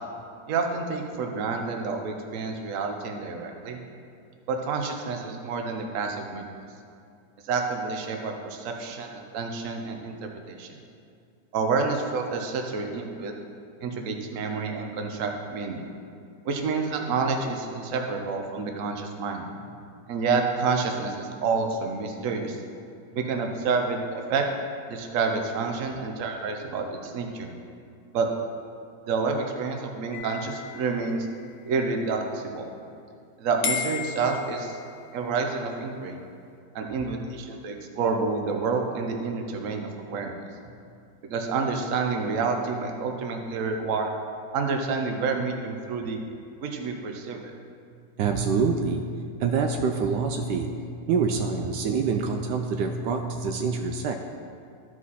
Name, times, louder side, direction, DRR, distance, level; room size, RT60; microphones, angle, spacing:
voice 1, 0.5-3.8 4.5-6.4 7.4-10.1 10.5-10.7 11.5-13.3 13.8-15.9 16.4-19.4 20.1-22.6 23.2-24.5 24.9-27.5 28.1-28.3 29.1-31.3 31.7-32.7 33.4-34.8 35.1-36.2 36.7-40.3 41.3-44.1 44.5-46.2 46.6-47.5, right 4 dB, 55° right, 3 dB, 1.1 m, -28 dB
sound 1, 30.1-31.7 33.6-35.2, left 6 dB, 85° left, 1.6 m, -34 dB
voice 2, 37.0-37.3 48.2-54.2, right 5 dB, 75° right, 4 dB, 1.2 m, -26 dB
13.5 x 5.0 x 4.1 m, 2.4 s
omnidirectional pair, 1.9 m